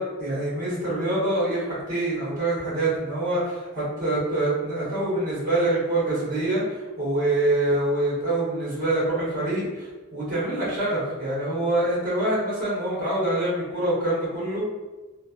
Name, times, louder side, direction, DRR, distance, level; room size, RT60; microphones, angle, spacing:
voice 1, 0.0-6.6 7.0-14.7, right 1 dB, 40° right, -7 dB, 1.0 m, -25 dB
3.1 x 2.1 x 2.5 m, 1.2 s
head